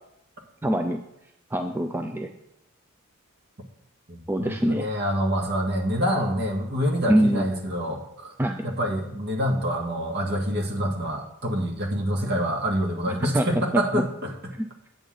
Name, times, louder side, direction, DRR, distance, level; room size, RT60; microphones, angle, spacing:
voice 1, 0.6-1.0 1.5-2.3 4.3-4.9 7.1-7.4 8.4-8.6 13.1-13.4 13.9-14.0 14.6-14.7, right 1 dB, 10° right, 5 dB, 0.4 m, -24 dB
voice 2, 4.1-8.3 8.6-14.3, equal, 50° right, 1 dB, 1.7 m, -26 dB
9.2 x 8.1 x 3.7 m, 0.83 s
head